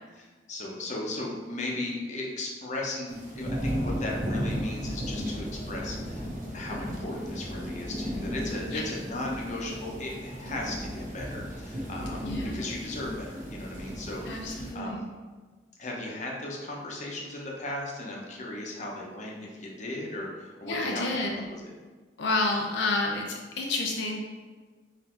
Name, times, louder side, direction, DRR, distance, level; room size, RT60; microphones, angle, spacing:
voice 1, 0.2-6.2 6.5-15.0 15.8-21.6, left 1 dB, 45° left, -2 dB, 0.8 m, -36 dB
sound 1, 3.1-14.7, equal, 50° right, 1.0 m, -35 dB
voice 2, 12.2-12.6 14.3-15.0 20.6-21.4 22.2-24.2, left 2 dB, 85° left, 0 dB, 0.6 m, -30 dB
4.1 x 2.7 x 4.3 m, 1.4 s
head